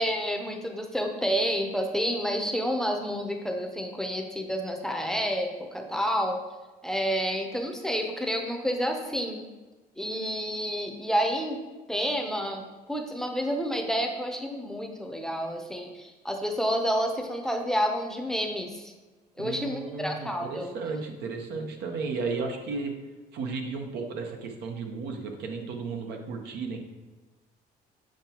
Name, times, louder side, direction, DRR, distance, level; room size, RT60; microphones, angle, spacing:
voice 1, 0.0-6.4 6.8-9.4 10.0-11.6 11.9-12.6 12.9-18.9 19.4-20.7, equal, 5° left, 3 dB, 0.6 m, -29 dB
voice 2, 19.4-22.9 23.3-26.8, right 4 dB, 80° right, 3 dB, 0.9 m, -34 dB
7.5 x 4.5 x 2.9 m, 1.2 s
cardioid pair, 110°, 17 cm